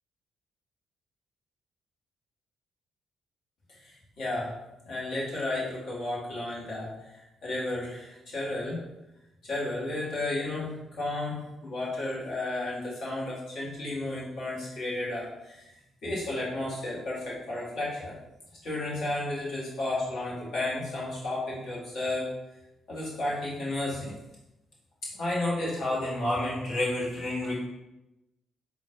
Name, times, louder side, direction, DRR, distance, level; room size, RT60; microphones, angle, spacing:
voice 1, 3.8-4.5 4.8-8.8 9.4-15.7 16.0-18.1 18.6-22.3 22.9-24.1 25.0-27.5, left 2 dB, 55° left, -6 dB, 1.4 m, -32 dB
3.8 x 2.4 x 3.6 m, 0.96 s
figure-of-eight pair, 40°, 0 cm